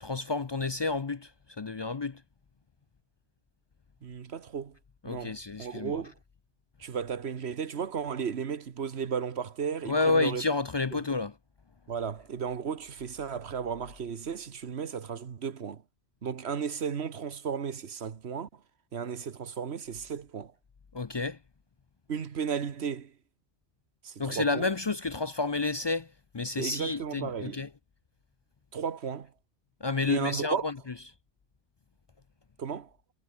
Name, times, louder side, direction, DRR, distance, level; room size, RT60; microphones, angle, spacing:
voice 1, 0.0-1.3 1.6-2.2 5.0-6.0 9.9-11.3 20.9-21.4 24.2-26.1 26.3-27.7 29.8-30.7, left 3 dB, 40° left, 0.4 m, -30 dB
voice 2, 4.0-4.8 5.1-6.1 6.8-10.4 11.9-15.8 16.2-18.6 18.9-20.5 22.1-23.1 24.0-24.7 26.6-27.6 28.7-29.3 30.1-30.7 32.6-32.9, right 7 dB, 65° right, 1.4 m, -34 dB
omnidirectional pair, 1.2 m